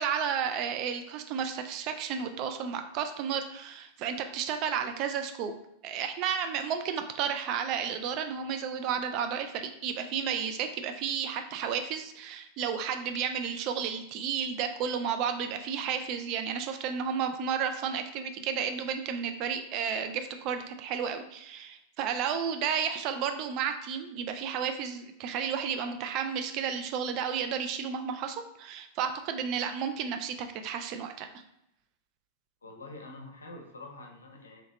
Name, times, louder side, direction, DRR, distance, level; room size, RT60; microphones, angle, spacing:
voice 1, 0.0-5.5 5.8-31.3, right 7 dB, 40° right, 7 dB, 0.3 m, -32 dB
voice 2, 32.6-34.6, left 2 dB, 70° left, 2 dB, 0.6 m, -46 dB
3.1 x 2.7 x 3.0 m, 0.80 s
figure-of-eight pair, 90°, 0 cm